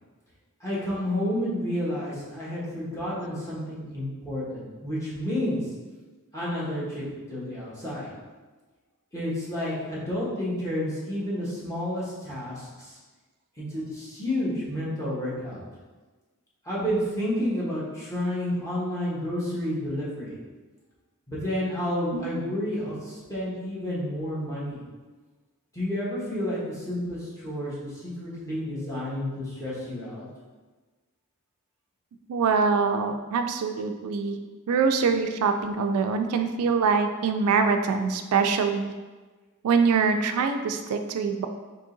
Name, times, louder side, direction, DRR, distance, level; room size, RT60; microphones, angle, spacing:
voice 1, 0.6-5.6 6.3-8.1 9.1-13.0 13.6-15.6 16.6-20.4 21.3-24.8 25.7-30.2, left 1 dB, 15° left, -8 dB, 1.1 m, -30 dB
voice 2, 32.3-34.4 34.7-38.9 39.6-41.5, right 5 dB, 80° right, 6 dB, 0.3 m, -24 dB
3.7 x 2.8 x 3.8 m, 1.3 s
head